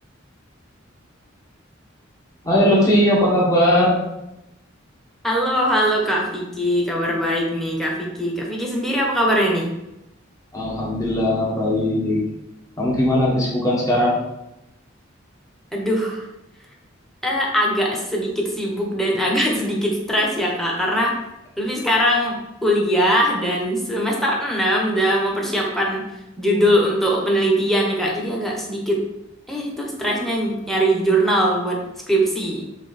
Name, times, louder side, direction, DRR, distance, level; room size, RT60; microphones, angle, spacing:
voice 1, 2.4-4.0 10.5-12.2 12.8-14.1, left 1 dB, 15° left, -5 dB, 1.7 m, -18 dB
voice 2, 5.2-9.7 15.7-16.2 17.2-21.1 21.6-26.0 26.4-29.0 29.5-31.8 32.1-32.6, equal, ahead, -2 dB, 1.4 m, -21 dB
7.4 x 4.0 x 4.4 m, 0.91 s
head